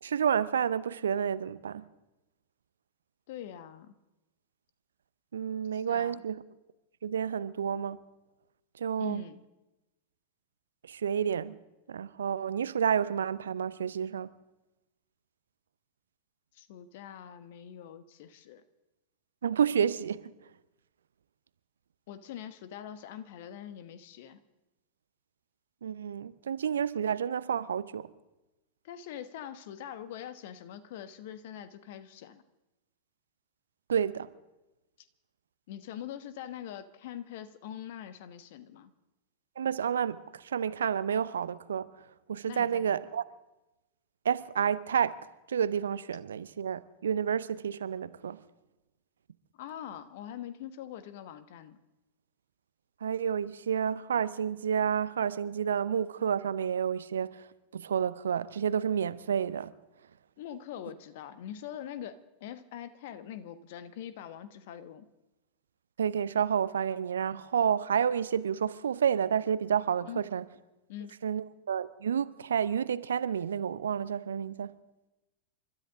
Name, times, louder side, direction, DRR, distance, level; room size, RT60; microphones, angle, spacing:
voice 1, 0.0-1.8 5.3-6.4 7.0-8.0 8.8-9.2 10.9-11.5 11.9-14.3 19.4-20.2 25.8-28.1 33.9-34.3 39.6-41.8 42.3-43.2 44.2-45.1 45.5-48.4 53.0-57.4 57.7-59.7 66.0-70.4 71.2-74.7, right 8 dB, 65° right, 0.6 m, -30 dB
voice 2, 3.3-3.9 5.7-6.2 9.0-9.4 16.5-18.6 22.1-24.4 28.8-32.4 35.7-38.9 42.4-43.0 49.6-51.8 60.4-65.1 70.1-70.2 70.9-71.1, left 10 dB, 50° left, 1.0 m, -43 dB
29.0 x 13.0 x 3.7 m
figure-of-eight pair, 90°, 0 cm